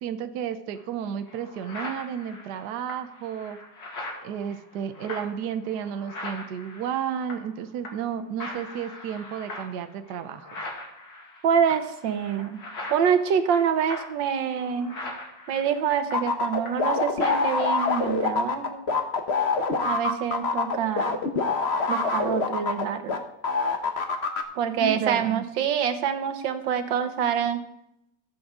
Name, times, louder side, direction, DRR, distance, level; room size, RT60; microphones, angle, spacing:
voice 1, 0.0-3.6 4.2-10.5 24.8-25.4, right 8 dB, 70° right, 9 dB, 1.2 m, -32 dB
sound 1, 0.7-0.8 1.3-7.6 7.8-8.1 8.4-16.9 17.2-18.2, left 2 dB, 75° left, 2.8 m, -41 dB
voice 2, 11.4-12.6 12.9-15.0 15.5-18.9 19.8-21.2 21.9-23.2 24.6-27.6, right 7 dB, 90° right, 9 dB, 1.7 m, -26 dB
sound 2, 16.1-23.2 23.4-24.4, left 4 dB, 40° left, 1.2 m, -25 dB
19.0 x 7.8 x 3.7 m, 0.82 s
omnidirectional pair, 2.0 m